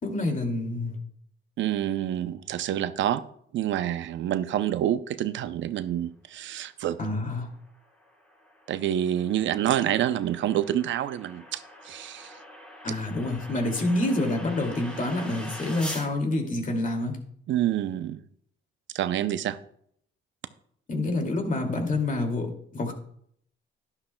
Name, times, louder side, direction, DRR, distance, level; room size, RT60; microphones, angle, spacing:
voice 1, 0.0-1.0 7.0-7.5 12.8-17.2 20.9-22.5 22.7-22.9, left 2 dB, 40° left, 3 dB, 2.3 m, -27 dB
voice 2, 1.6-3.2 3.5-7.0 8.7-12.3 17.5-18.2 18.9-19.6, right 11 dB, 70° right, 13 dB, 0.6 m, -27 dB
sound 1, 7.4-16.1, equal, 5° left, 2.8 m, -44 dB
11.5 x 11.5 x 2.2 m, 0.65 s
cardioid pair, 90°, 20 cm